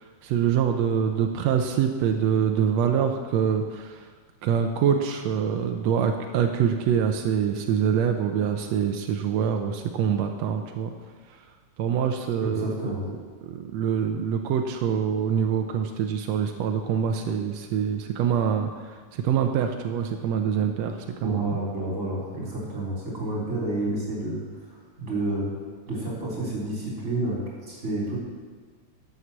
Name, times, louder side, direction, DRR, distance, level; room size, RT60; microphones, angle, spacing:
voice 1, 0.2-4.1 4.4-10.9 11.8-21.6, right 7 dB, 85° right, 5 dB, 1.5 m, -25 dB
voice 2, 12.4-13.0 21.2-24.4 25.0-25.5 25.9-28.2, right 2 dB, 20° right, -4 dB, 3.9 m, -30 dB
11.0 x 8.1 x 7.3 m, 1.5 s
omnidirectional pair, 4.0 m